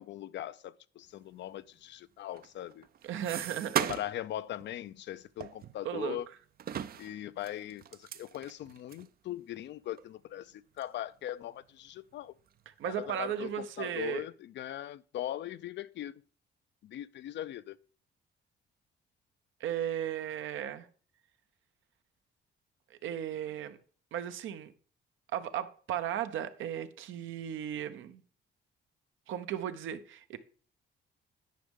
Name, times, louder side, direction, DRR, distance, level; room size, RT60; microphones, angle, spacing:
voice 1, 0.0-2.9 3.8-6.3 7.0-12.3 12.8-16.2 16.8-17.8, left 12 dB, 65° left, 0.4 m, -40 dB
sound 1, 2.3-4.3 4.6-4.8 5.4-6.2 6.6-9.1 9.6-9.7 10.0-10.1 10.8-11.0 11.4-12.1 12.5-13.2, right 10 dB, 50° right, 0.4 m, -38 dB
voice 2, 3.0-3.9 5.8-6.2 12.8-14.2 19.6-20.9 22.9-23.8 24.1-24.7 25.3-28.2 29.3-30.4, right 10 dB, 80° right, 0.8 m, -36 dB
10.0 x 5.2 x 3.7 m
cardioid pair, 90°, 20 cm